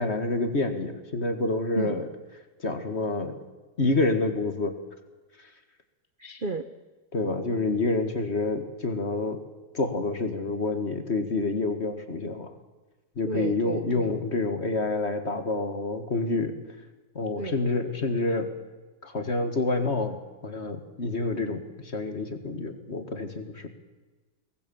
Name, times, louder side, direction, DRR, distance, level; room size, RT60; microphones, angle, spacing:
voice 1, 0.0-2.1 2.6-3.3 3.8-4.8 7.1-9.4 9.7-12.5 13.2-16.5 17.2-18.5 19.0-20.2 20.4-23.7, left 3 dB, 35° left, 8 dB, 1.9 m, -28 dB
voice 2, 6.2-6.6 13.3-14.1 17.4-17.6, right 3 dB, 40° right, 8 dB, 0.8 m, -33 dB
23.5 x 19.0 x 7.0 m, 1.2 s
omnidirectional pair, 2.2 m